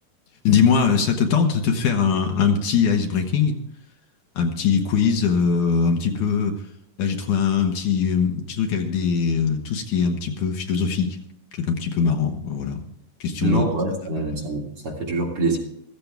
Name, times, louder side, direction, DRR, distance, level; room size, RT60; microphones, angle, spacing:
voice 1, 0.4-3.6 4.4-6.6 7.0-11.2 11.5-12.8 13.2-13.7, left 6 dB, 70° left, 4 dB, 2.6 m, -21 dB
voice 2, 13.4-15.6, right 2 dB, 45° right, -1 dB, 2.5 m, -25 dB
15.5 x 14.0 x 3.5 m, 0.75 s
omnidirectional pair, 3.9 m